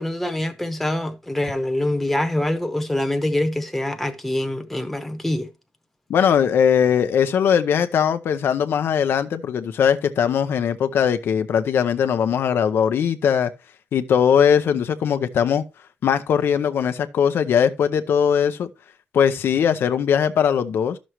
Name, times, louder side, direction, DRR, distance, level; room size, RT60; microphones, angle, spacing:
voice 1, 0.0-5.5, left 1 dB, 5° left, 0.9 m, -24 dB
voice 2, 6.1-13.5 13.9-15.6 16.0-18.7 19.1-21.0, left 8 dB, 75° left, 0.7 m, -20 dB
12.5 x 6.2 x 3.0 m
wide cardioid pair, 180°, 4 cm